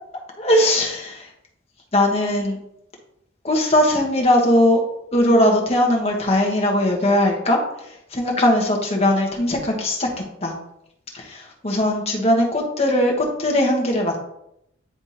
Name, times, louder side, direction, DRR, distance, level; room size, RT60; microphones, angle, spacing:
voice 1, 0.4-1.2 1.9-2.6 3.4-4.8 5.1-7.6 8.1-10.1 10.4-10.5 11.6-14.2, left 1 dB, 30° left, 0 dB, 1.2 m, -19 dB
9.7 x 3.5 x 2.8 m, 0.78 s
head